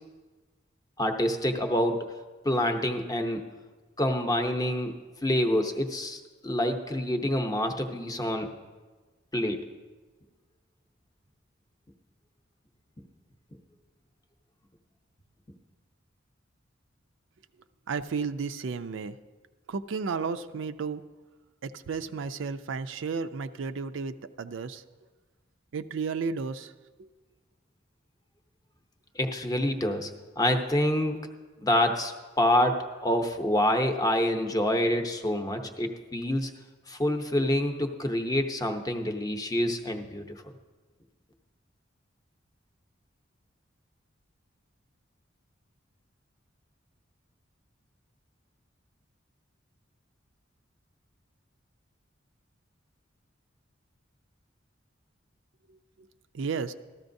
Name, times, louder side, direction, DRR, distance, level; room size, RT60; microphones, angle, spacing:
voice 1, 1.0-2.0 2.4-3.4 4.0-8.5 9.3-9.6 29.2-30.1 30.4-31.2 31.6-36.5 36.9-40.2, left 1 dB, 20° left, 5 dB, 0.7 m, -27 dB
voice 2, 17.9-19.1 19.7-21.0 21.6-24.8 25.7-26.7 56.3-56.7, right 5 dB, 75° right, 10 dB, 0.4 m, -33 dB
13.5 x 13.5 x 2.6 m, 1.3 s
head